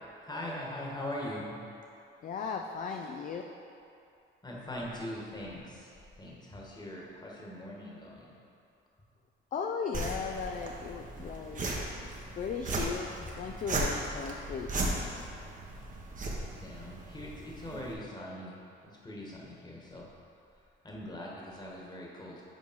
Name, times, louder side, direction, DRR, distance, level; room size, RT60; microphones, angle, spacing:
voice 1, 0.2-1.5 4.4-8.4 11.6-11.7 16.5-20.1 20.8-22.4, left 1 dB, 20° left, -3 dB, 1.4 m, -41 dB
voice 2, 2.2-3.4 9.5-11.7 12.3-15.0, left 6 dB, 40° left, 3 dB, 0.4 m, -37 dB
sound 1, 9.9-17.9, right 2 dB, 40° right, 0.9 m, -37 dB
5.4 x 4.6 x 5.2 m, 2.6 s
cardioid pair, 90°, 20 cm